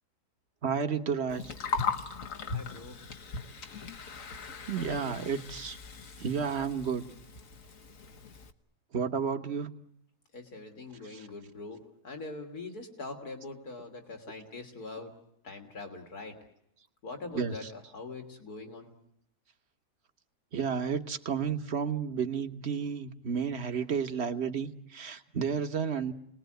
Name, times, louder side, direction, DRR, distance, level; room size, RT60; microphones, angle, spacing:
voice 1, 0.6-1.5 4.7-5.8 6.2-7.0 8.9-9.7 17.3-17.5 20.5-26.1, right 6 dB, 45° right, 7 dB, 1.5 m, -31 dB
Gurgling, 1.3-8.5, left 5 dB, 60° left, 1.7 m, -38 dB
voice 2, 2.5-3.0 4.7-5.2 10.3-15.1 15.4-16.4 17.0-18.9, left 3 dB, 80° left, 4 dB, 3.5 m, -43 dB
29.5 x 20.0 x 9.2 m, 0.79 s
omnidirectional pair, 1.6 m